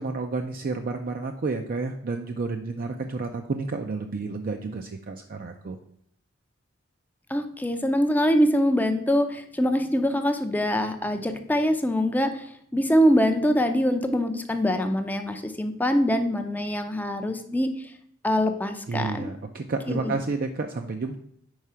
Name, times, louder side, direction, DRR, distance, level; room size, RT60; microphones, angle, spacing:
voice 1, 0.0-5.8 18.9-21.2, right 3 dB, 45° right, 4 dB, 0.4 m, -30 dB
voice 2, 7.3-17.9 18.2-19.3 19.9-20.1, equal, 10° left, 7 dB, 0.5 m, -24 dB
4.8 x 4.8 x 5.6 m, 0.69 s
head